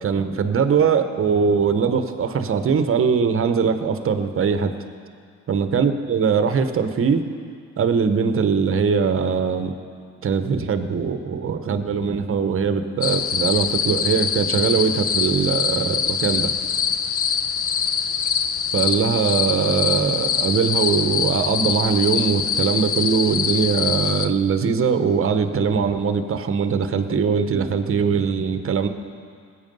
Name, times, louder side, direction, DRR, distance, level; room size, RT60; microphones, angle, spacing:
voice 1, 0.0-4.7 5.5-7.2 7.8-9.7 10.2-16.5 18.7-28.9, right 6 dB, 45° right, 9 dB, 1.0 m, -21 dB
sound 1, 13.0-24.3, left 7 dB, 50° left, 0.7 m, -24 dB
19.5 x 8.4 x 5.4 m, 2.2 s
cardioid pair, 90°, 30 cm